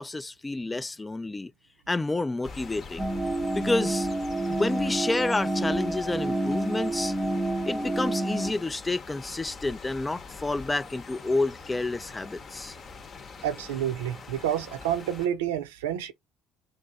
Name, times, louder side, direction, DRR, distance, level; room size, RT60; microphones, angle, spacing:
voice 1, 0.0-1.5 1.9-3.1 3.5-4.1 4.5-7.1 7.7-12.8, left 2 dB, 20° left, 0.3 m, -29 dB
sound 1, 2.4-15.3, left 4 dB, 45° left, 0.8 m, -44 dB
sound 2, 3.0-8.5, right 1 dB, 15° right, 0.7 m, -28 dB
voice 2, 13.4-16.1, right 10 dB, 90° right, 0.6 m, -29 dB
3.4 x 2.6 x 4.0 m
hypercardioid pair, 65°, 0 cm